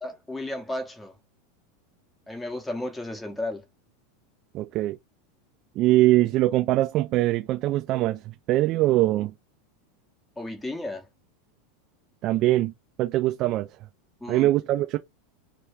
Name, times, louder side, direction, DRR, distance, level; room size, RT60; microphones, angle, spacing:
voice 1, 0.0-1.1 2.3-3.6 10.4-11.1 14.2-14.5, left 1 dB, 5° left, 0.7 m, -33 dB
voice 2, 4.5-5.0 5.8-9.3 12.2-12.7 13.0-13.7 14.3-15.0, right 16 dB, 45° right, 0.3 m, -22 dB
2.3 x 2.2 x 3.2 m
figure-of-eight pair, 85°, 0 cm